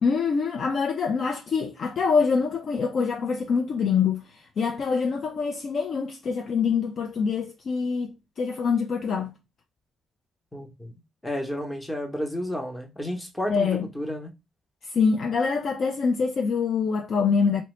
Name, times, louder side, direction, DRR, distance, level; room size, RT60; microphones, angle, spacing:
voice 1, 0.0-9.3 13.5-13.8 14.9-17.6, left 5 dB, 55° left, 0.4 m, -25 dB
voice 2, 10.5-10.9 11.2-14.3, left 1 dB, 10° left, 0.7 m, -32 dB
2.7 x 2.1 x 3.0 m
cardioid pair, 90°, 0 cm